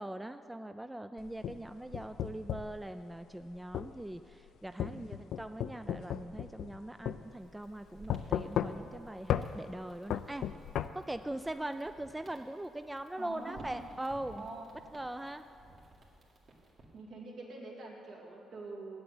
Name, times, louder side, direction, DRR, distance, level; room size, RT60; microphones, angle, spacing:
voice 1, 0.0-10.4 10.9-14.5 14.9-15.4, right 1 dB, 10° right, 9 dB, 0.3 m, -41 dB
sound 1, 1.2-2.8 3.7-3.9 4.8-6.8 7.1-7.2 8.1-9.0 9.3-9.5 10.1-10.9, left 10 dB, 75° left, 0.3 m, -34 dB
voice 2, 4.9-5.3 13.2-13.8 14.3-14.7 16.9-19.0, right 3 dB, 70° right, -2 dB, 2.3 m, -45 dB
sound 2, 7.2-17.0, right 1 dB, 50° right, 2.2 m, -57 dB
7.9 x 7.9 x 8.8 m, 2.7 s
cardioid pair, 90°, 0 cm